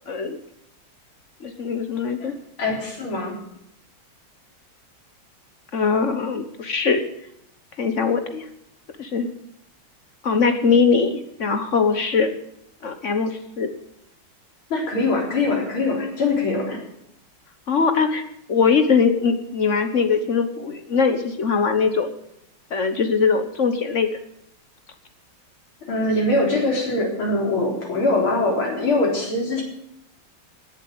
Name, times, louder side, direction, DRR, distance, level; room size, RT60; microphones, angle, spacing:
voice 1, 0.1-0.4 1.4-2.3 5.7-7.0 7.8-8.4 9.0-9.3 10.2-12.3 12.8-13.7 17.7-18.2 18.5-22.1 22.7-24.1, left 5 dB, 45° left, 8 dB, 1.3 m, -21 dB
voice 2, 2.6-3.4 14.7-16.8 25.9-29.6, left 2 dB, 90° left, -1 dB, 4.6 m, -22 dB
18.0 x 7.4 x 8.0 m, 0.78 s
omnidirectional pair, 2.2 m